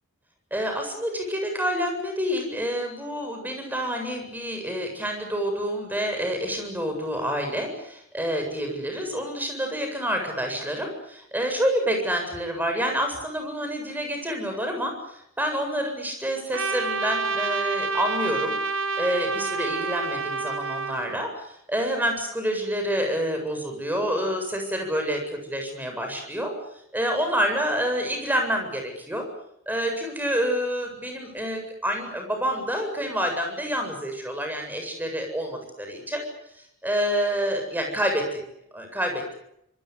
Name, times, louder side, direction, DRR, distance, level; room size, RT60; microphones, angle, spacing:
voice 1, 0.5-18.5 19.0-26.5 26.9-29.3 29.7-36.3 36.5-38.2 38.7-39.3, equal, 10° right, 4 dB, 7.7 m, -28 dB
Trumpet, 16.5-21.2, right 4 dB, 65° right, 1.6 m, -28 dB
26.0 x 23.5 x 8.3 m, 0.77 s
head